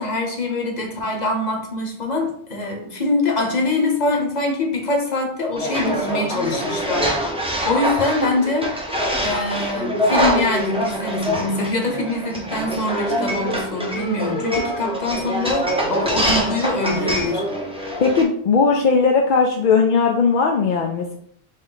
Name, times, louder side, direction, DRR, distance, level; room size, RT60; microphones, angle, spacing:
voice 1, 0.0-7.1 7.7-8.7 9.2-17.4, left 2 dB, 40° left, 2 dB, 1.0 m, -24 dB
sound 1, 5.6-18.2, equal, 5° right, 0.6 m, -24 dB
voice 2, 18.0-21.2, left 5 dB, 60° left, 2 dB, 0.6 m, -18 dB
4.1 x 3.0 x 3.9 m, 0.63 s
omnidirectional pair, 1.1 m